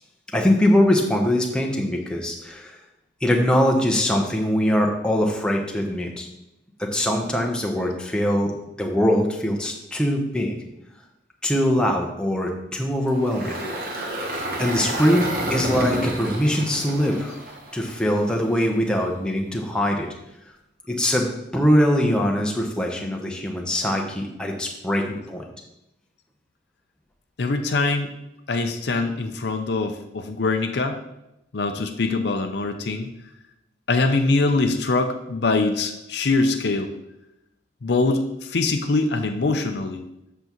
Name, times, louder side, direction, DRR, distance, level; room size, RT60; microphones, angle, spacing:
voice 1, 0.3-2.8 3.2-6.3 6.8-10.6 11.4-13.6 13.8-17.4 17.7-20.1 20.9-25.4, equal, 5° left, 0 dB, 0.8 m, -22 dB
Engine, 13.1-18.4, right 1 dB, 50° right, 1.2 m, -29 dB
voice 2, 27.4-28.1 28.5-31.0 31.5-33.1 33.9-36.9 37.8-40.0, left 3 dB, 60° left, 6 dB, 0.5 m, -23 dB
7.8 x 6.8 x 3.0 m, 0.89 s
head